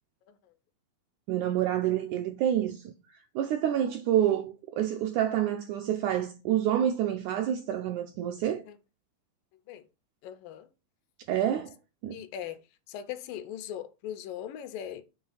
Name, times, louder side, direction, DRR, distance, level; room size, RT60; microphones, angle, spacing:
voice 1, 1.3-2.9 3.4-8.6 11.3-11.8 12.0-12.2, right 11 dB, 85° right, 1.7 m, -28 dB
voice 2, 10.2-10.7 12.1-12.6 12.9-15.0, left 10 dB, 80° left, 2.3 m, -39 dB
7.5 x 3.1 x 5.6 m
omnidirectional pair, 4.0 m